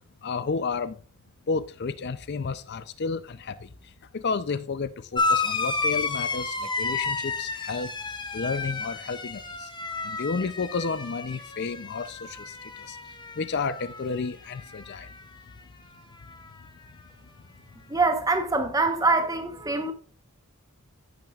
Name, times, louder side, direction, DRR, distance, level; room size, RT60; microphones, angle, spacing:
voice 1, 0.2-1.0 1.5-3.6 4.1-7.9 8.3-9.7 10.0-12.5 12.9-13.0 13.4-15.1, left 4 dB, 50° left, 0.5 m, -31 dB
sound 1, 5.2-14.2 14.5-15.2 16.3-16.4, left 4 dB, 20° left, 1.0 m, -31 dB
voice 2, 17.9-19.9, right 3 dB, 15° right, 1.0 m, -24 dB
14.5 x 6.1 x 2.4 m
head